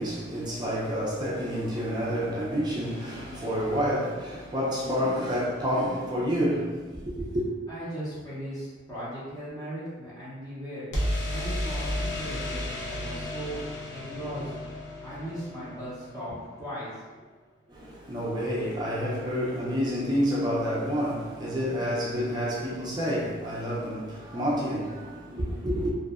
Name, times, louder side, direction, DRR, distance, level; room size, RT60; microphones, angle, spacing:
voice 1, 0.0-7.4 17.7-25.9, equal, 20° right, 0.4 m, -29 dB
sound 1, 2.8-4.8 10.9-16.7, left 1 dB, 60° left, 0.6 m, -34 dB
voice 2, 7.7-10.9 11.3-13.6 13.9-14.5 15.0-16.9, equal, 20° left, 0.6 m, -37 dB
2.6 x 2.1 x 2.3 m
head